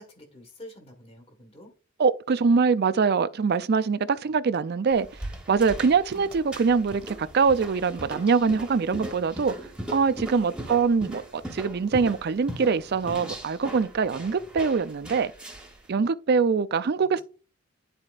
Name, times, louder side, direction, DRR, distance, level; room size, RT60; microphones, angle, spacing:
voice 1, 0.0-1.7 6.1-6.3 10.1-10.2 17.0-17.2, equal, 25° left, 1.4 m, -48 dB
voice 2, 2.0-5.1 5.5-9.5 9.9-15.3 15.9-17.2, right 5 dB, 50° right, 0.4 m, -23 dB
sound 1, 4.9-15.8, right 1 dB, 5° right, 1.1 m, -39 dB
10.5 x 4.3 x 2.4 m
head